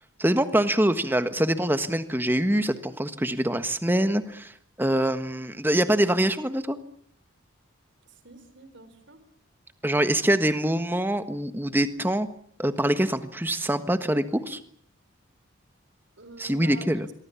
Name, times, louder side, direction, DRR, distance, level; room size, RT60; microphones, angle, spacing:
voice 1, 0.2-4.5 4.8-6.8 9.8-12.3 12.6-14.6 16.4-17.0, right 1 dB, 10° right, 10 dB, 1.4 m, -24 dB
voice 2, 8.1-9.2 16.2-17.0, right 2 dB, 65° right, 11 dB, 4.2 m, -46 dB
26.5 x 23.0 x 7.1 m, 0.62 s
head